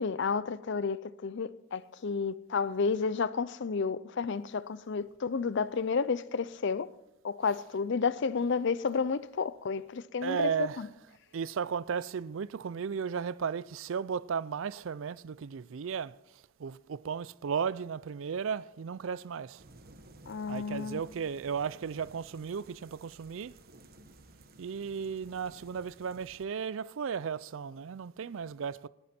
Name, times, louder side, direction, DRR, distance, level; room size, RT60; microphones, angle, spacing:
voice 1, 0.0-6.9 7.2-10.9 20.3-21.0, left 5 dB, 60° left, 0.5 m, -31 dB
voice 2, 10.2-10.8 11.3-19.6 20.5-23.6 24.6-28.9, right 6 dB, 65° right, 0.4 m, -35 dB
sound 1, 19.6-26.5, right 2 dB, 45° right, 1.1 m, -56 dB
19.0 x 11.0 x 4.4 m
head